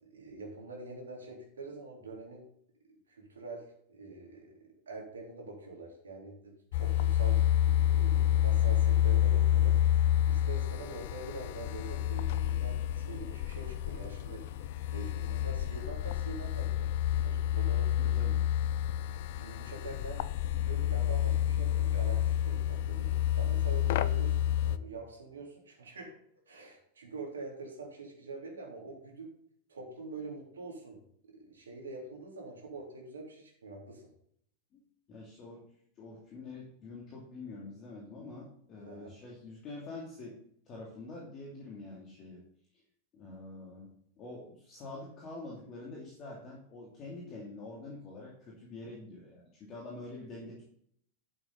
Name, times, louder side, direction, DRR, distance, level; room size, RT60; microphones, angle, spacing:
voice 1, 0.0-2.5 3.1-9.8 10.3-14.4 14.9-18.1 19.3-20.2 20.5-24.4 24.6-26.1 26.5-29.3 29.7-31.0 31.2-34.1 38.9-39.1, right 3 dB, 70° right, -1 dB, 3.5 m, -45 dB
sound 1, 6.7-24.8, left 12 dB, 50° left, 0.5 m, -29 dB
voice 2, 18.0-18.4 34.7-34.8 35.1-35.6 36.0-40.4 40.7-42.4 43.1-43.9 44.2-50.8, left 2 dB, 30° left, -4 dB, 2.9 m, -46 dB
12.0 x 7.8 x 4.0 m, 0.67 s
figure-of-eight pair, 90°, 0 cm